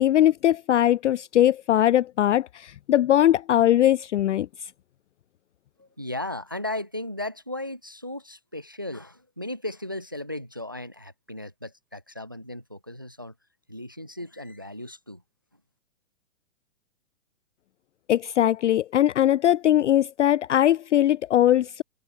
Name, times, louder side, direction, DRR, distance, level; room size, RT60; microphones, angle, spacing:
voice 1, 0.0-4.5 18.1-21.8, left 12 dB, 55° left, 0.5 m, -20 dB
voice 2, 5.8-13.3 13.7-15.2, left 1 dB, 15° right, 0.4 m, -36 dB
hypercardioid pair, 170°, 42 cm